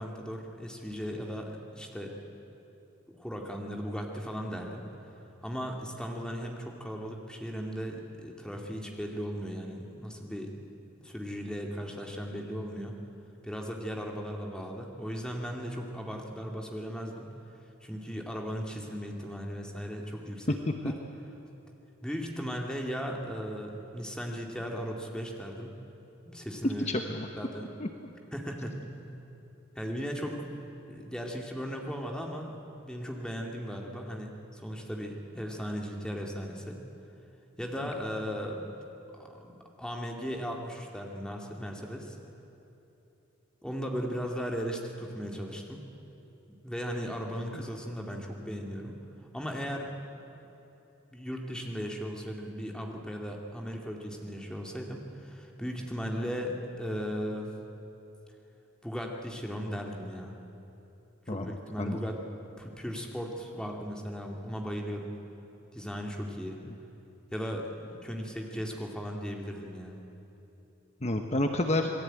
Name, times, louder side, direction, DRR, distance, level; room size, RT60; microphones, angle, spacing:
voice 1, 0.0-2.2 3.1-4.8 5.4-10.5 11.0-13.0 13.4-17.3 17.8-20.6 20.8-20.9 22.0-25.7 26.2-26.9 27.4-27.7 28.3-28.8 29.8-30.5 30.9-36.8 37.6-38.7 39.2-42.2 43.6-45.8 46.6-48.9 49.3-49.9 51.1-57.5 58.8-60.4 61.3-62.2 62.6-65.1 65.7-66.6 67.3-70.0, equal, 5° left, 1 dB, 2.4 m, -37 dB
voice 2, 26.6-27.3 27.8-27.9 61.3-62.0 66.7-66.8 71.0-71.9, left 1 dB, 35° left, 4 dB, 1.1 m, -29 dB
27.5 x 19.5 x 9.0 m, 3.0 s
head